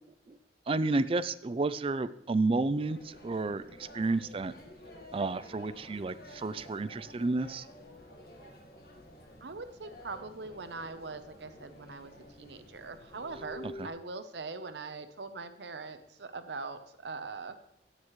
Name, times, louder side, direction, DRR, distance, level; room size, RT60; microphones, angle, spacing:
voice 1, 0.7-4.5 5.1-7.6 13.8-13.9, right 3 dB, 30° right, 15 dB, 0.4 m, -31 dB
sound 1, 2.7-13.9, left 1 dB, 55° left, 1.7 m, -51 dB
voice 2, 9.4-17.6, right 3 dB, 80° right, 10 dB, 0.8 m, -42 dB
14.5 x 9.4 x 3.2 m, 0.81 s
head